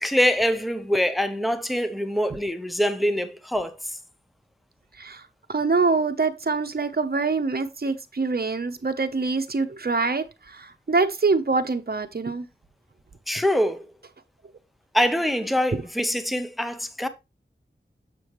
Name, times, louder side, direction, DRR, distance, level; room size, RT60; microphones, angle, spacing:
voice 1, 0.0-3.7 13.3-13.8 14.9-17.1, equal, ahead, 0.7 m, -24 dB
voice 2, 5.5-12.4, right 4 dB, 50° right, 0.8 m, -25 dB
6.9 x 6.6 x 3.1 m
wide cardioid pair, 50°, 20 cm